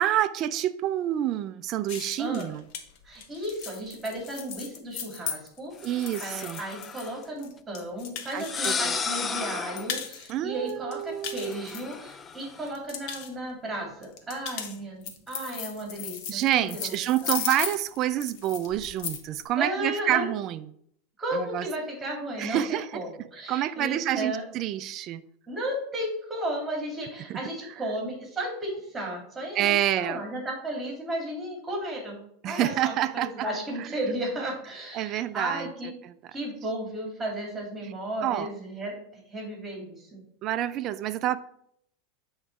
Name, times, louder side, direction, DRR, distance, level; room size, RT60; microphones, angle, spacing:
voice 1, 0.0-2.6 5.8-6.6 8.3-9.0 10.3-11.7 16.3-20.6 21.3-21.7 22.4-23.0 23.5-25.2 27.3-27.4 29.5-30.2 32.4-33.5 33.8-34.0 34.9-35.7 36.0-36.1 38.2-38.5 40.4-41.4, right 12 dB, 45° right, 0.5 m, -28 dB
sound 1, 1.9-9.0 9.3-10.3 10.7-12.3 12.7-13.3 14.0-19.4, left 8 dB, 55° left, 1.0 m, -37 dB
voice 2, 3.0-5.9 6.2-16.9 17.2-17.3 19.6-20.3 21.2-24.5 25.5-32.2 32.4-35.9 36.3-40.2, right 1 dB, 15° right, 3.0 m, -34 dB
sound 2, 5.8-7.2 8.3-10.0 11.4-12.7, left 5 dB, 25° left, 0.4 m, -34 dB
8.7 x 3.2 x 4.7 m
hypercardioid pair, 90°, 0 cm